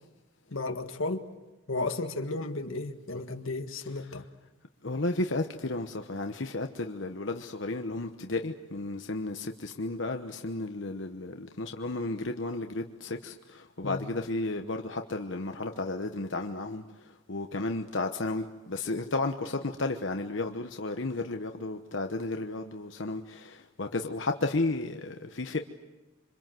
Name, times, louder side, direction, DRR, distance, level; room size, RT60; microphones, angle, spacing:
voice 1, 0.5-1.2 1.7-4.3 13.8-14.1, left 2 dB, 90° left, 1.8 m, -33 dB
voice 2, 4.8-25.6, left 2 dB, 65° left, 1.1 m, -33 dB
26.5 x 25.5 x 7.7 m
head